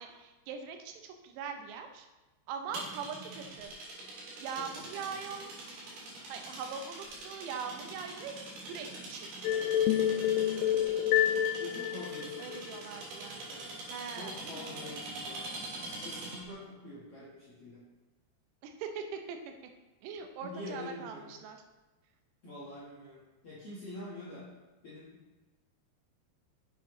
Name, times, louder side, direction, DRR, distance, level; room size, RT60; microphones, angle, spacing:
voice 1, 0.0-2.1 2.5-3.7 4.4-5.5 6.3-10.1 12.4-13.6 13.9-14.9 18.6-19.5 20.0-21.6, right 6 dB, 85° right, 5 dB, 2.9 m, -42 dB
sound 1, 2.7-16.5, right 2 dB, 70° right, 3.8 m, -44 dB
voice 2, 4.6-5.2 9.9-10.4 11.6-12.7 13.5-13.7 14.0-15.5 16.0-17.8 20.4-21.3 22.4-24.5 24.8-25.2, left 2 dB, 65° left, -9 dB, 1.4 m, -46 dB
sound 2, 9.4-12.8, left 10 dB, 85° left, 2.7 m, -28 dB
7.5 x 6.9 x 3.0 m, 1.1 s
omnidirectional pair, 4.8 m